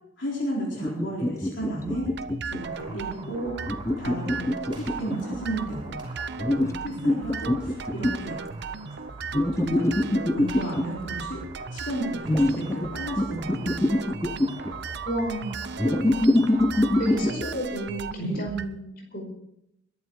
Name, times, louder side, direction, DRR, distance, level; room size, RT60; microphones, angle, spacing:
voice 1, 0.2-2.1 2.5-3.5 4.0-4.5 4.8-6.0 6.5-8.4 9.3-11.4 11.7-13.8 18.2-18.4, right 1 dB, 65° left, -4 dB, 4.4 m, -33 dB
sound 1, 0.7-2.6 3.6-5.4 6.4-8.3 9.3-10.9 12.3-12.9 13.2-14.7 15.8-17.3, left 1 dB, 15° left, 1.0 m, -24 dB
sound 2, 1.9-18.7, right 5 dB, 60° right, 0.8 m, -37 dB
sound 3, 2.6-17.3, right 2 dB, 25° right, 5.0 m, -47 dB
voice 2, 15.1-16.4 17.0-19.3, right 1 dB, 50° left, 1 dB, 5.2 m, -32 dB
21.5 x 11.0 x 4.8 m, 0.82 s
head